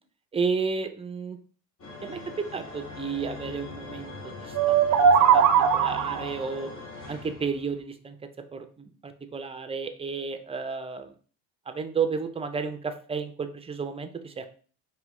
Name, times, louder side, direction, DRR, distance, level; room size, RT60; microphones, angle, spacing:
voice 1, 0.3-1.4 2.0-5.1 5.3-5.5 5.7-6.7 7.1-8.2 8.5-11.1 11.7-14.5, right 5 dB, 15° right, 8 dB, 0.5 m, -32 dB
sound 1, 1.8-7.8, left 3 dB, 55° left, 2.1 m, -41 dB
sound 2, 4.5-6.4, right 7 dB, 55° right, 0.6 m, -20 dB
4.8 x 3.0 x 3.1 m, 0.41 s
cardioid pair, 100°, 36 cm